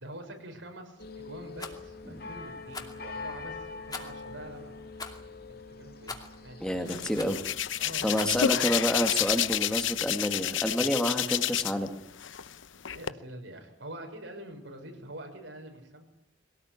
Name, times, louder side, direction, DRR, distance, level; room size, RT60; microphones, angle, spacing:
voice 1, 0.0-4.7 5.8-6.9 7.8-8.1 12.9-16.1, right 1 dB, 75° right, 3 dB, 6.4 m, -45 dB
sound 1, 1.0-10.2 10.5-10.7, left 3 dB, 50° left, 2.6 m, -45 dB
Rattle, 1.5-1.8 2.7-3.0 3.9-4.2 5.0-5.2 6.1-6.4 7.2-7.5 8.1-8.5 9.0-9.3, left 4 dB, 20° left, 2.6 m, -41 dB
voice 2, 6.6-7.4 8.0-12.0, equal, 5° left, 5 dB, 2.0 m, -29 dB
Hands, 6.9-11.9 12.2-13.1, left 11 dB, 85° left, 0.8 m, -29 dB
22.5 x 18.0 x 9.7 m, 0.74 s
head